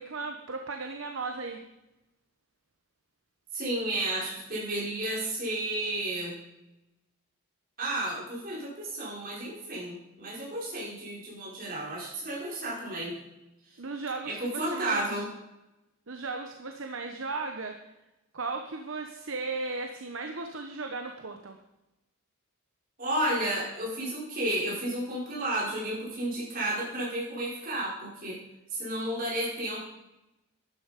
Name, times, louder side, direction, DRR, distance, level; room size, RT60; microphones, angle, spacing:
voice 1, 0.0-1.6 13.8-15.2 16.1-17.7 18.3-21.6, right 3 dB, 60° right, 5 dB, 1.0 m, -36 dB
voice 2, 3.5-6.4 7.8-13.2 14.2-15.3 23.0-28.4 28.7-29.8, right 1 dB, 40° right, -6 dB, 5.3 m, -32 dB
12.0 x 10.5 x 5.2 m, 0.95 s
head